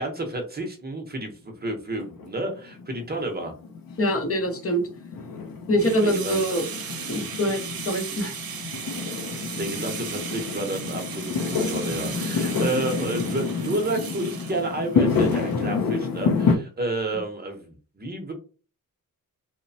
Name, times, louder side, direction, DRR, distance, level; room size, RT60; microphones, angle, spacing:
voice 1, 0.0-3.5 6.0-6.4 9.6-18.3, right 2 dB, 30° right, 4 dB, 0.7 m, -30 dB
Fireworks, 2.0-16.6, left 5 dB, 75° left, 0.6 m, -28 dB
voice 2, 4.0-4.9 5.7-6.6 7.1-7.6 7.9-8.3, equal, 40° left, 5 dB, 0.7 m, -24 dB
sound 1, 5.8-15.8, right 7 dB, 85° right, 0.6 m, -37 dB
3.0 x 2.0 x 2.6 m, 0.36 s
wide cardioid pair, 110°, 35 cm